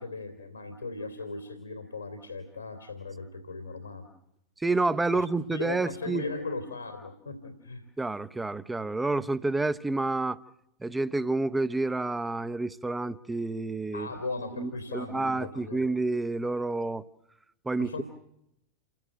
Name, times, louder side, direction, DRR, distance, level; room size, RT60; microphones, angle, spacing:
voice 1, 0.0-4.1 5.1-7.8 13.9-15.8 17.8-18.0, left 3 dB, 80° left, 2.9 m, -38 dB
voice 2, 4.6-6.2 8.0-10.4 10.8-14.1 14.6-17.0 17.6-18.0, right 2 dB, 10° right, 0.9 m, -29 dB
29.0 x 16.5 x 7.7 m
figure-of-eight pair, 90°, 0 cm